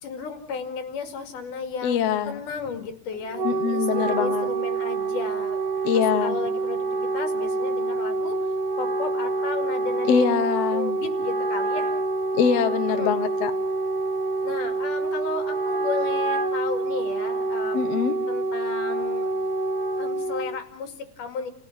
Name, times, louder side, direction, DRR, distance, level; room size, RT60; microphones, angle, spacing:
voice 1, 0.0-2.0 2.3-5.6 5.9-8.5 8.8-10.4 10.7-11.9 12.9-13.2 14.4-18.0 18.3-19.3 20.0-21.5, left 5 dB, 90° left, 6 dB, 3.9 m, -34 dB
voice 2, 1.8-2.4 3.4-4.5 5.8-6.4 10.1-11.0 12.3-13.5 17.7-18.1, left 8 dB, 60° left, 9 dB, 2.1 m, -23 dB
Wind instrument woodwind instrument, 3.1-20.6, right 3 dB, 70° right, 3.1 m, -27 dB
29.5 x 16.5 x 7.3 m, 0.64 s
omnidirectional pair, 3.6 m